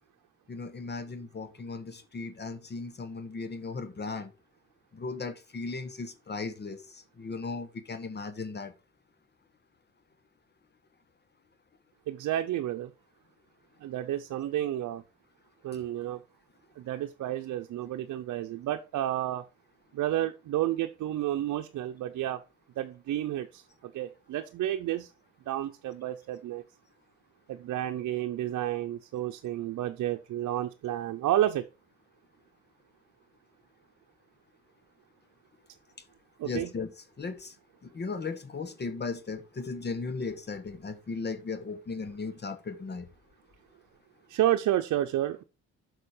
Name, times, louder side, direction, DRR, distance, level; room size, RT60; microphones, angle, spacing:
voice 1, 0.5-4.3 4.9-8.7 36.4-36.9 37.2-37.5 37.8-43.1, left 4 dB, 35° left, 1.2 m, -36 dB
voice 2, 12.1-12.9 13.8-15.0 15.6-16.2 16.8-19.4 19.9-22.4 22.8-25.1 25.5-26.6 27.5-31.6 36.4-36.7 44.3-45.4, right 13 dB, 75° right, 0.7 m, -31 dB
6.8 x 6.3 x 4.8 m
cardioid pair, 90°, 30 cm